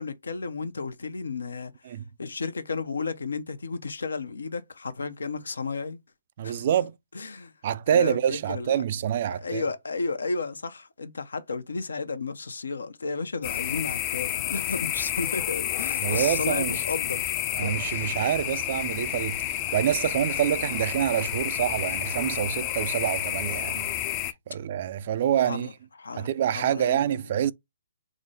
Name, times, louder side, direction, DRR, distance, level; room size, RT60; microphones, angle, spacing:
voice 1, 0.0-6.0 6.4-6.7 7.1-7.5 7.9-8.8 9.3-17.3 17.6-18.3 25.4-25.7 26.0-27.4, left 4 dB, 85° left, 0.6 m, -33 dB
voice 2, 6.4-7.0 7.6-9.6 16.0-16.8 17.6-24.0 24.5-25.7 26.2-27.5, right 10 dB, 50° right, 0.3 m, -26 dB
sound 1, 13.4-24.3, left 12 dB, 30° left, 0.4 m, -30 dB
3.7 x 2.1 x 3.7 m
hypercardioid pair, 145°, 0 cm